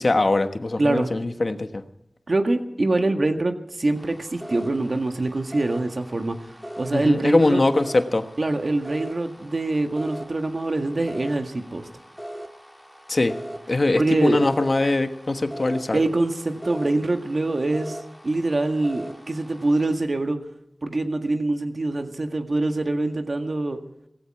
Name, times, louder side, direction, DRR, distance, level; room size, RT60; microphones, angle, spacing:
voice 1, 0.0-1.8 6.9-8.2 13.1-13.3 13.7-16.0, left 2 dB, 60° left, 8 dB, 1.3 m, -22 dB
voice 2, 0.8-1.1 2.3-6.4 6.8-7.6 8.4-11.9 13.9-14.4 15.9-18.0 18.2-20.4 20.8-23.8, right 2 dB, 65° right, 5 dB, 1.7 m, -24 dB
sound 1, 3.9-19.9, equal, ahead, 1.6 m, -40 dB
16.5 x 15.5 x 4.8 m, 0.83 s
wide cardioid pair, 45°, 0 cm